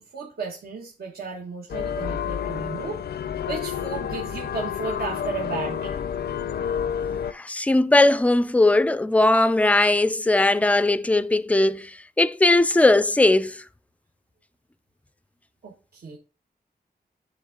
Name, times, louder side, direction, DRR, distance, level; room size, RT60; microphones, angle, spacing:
voice 1, 0.0-3.0 3.5-6.0 15.6-16.2, right 4 dB, 70° right, 1.1 m, -34 dB
sound 1, 1.7-7.3, left 8 dB, 75° left, 0.4 m, -29 dB
voice 2, 7.3-13.6, left 2 dB, 10° left, 0.3 m, -19 dB
9.6 x 3.5 x 3.7 m
wide cardioid pair, 90°, 17 cm